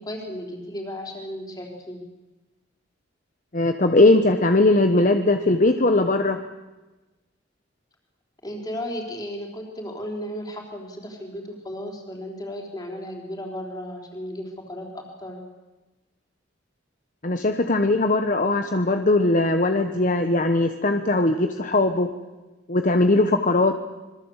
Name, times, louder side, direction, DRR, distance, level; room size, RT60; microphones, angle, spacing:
voice 1, 0.0-2.0 8.4-15.4, equal, 20° left, 1 dB, 4.4 m, -35 dB
voice 2, 3.5-6.4 17.2-22.1 22.7-23.8, left 2 dB, 40° left, 7 dB, 1.1 m, -20 dB
26.5 x 22.5 x 8.2 m, 1.2 s
head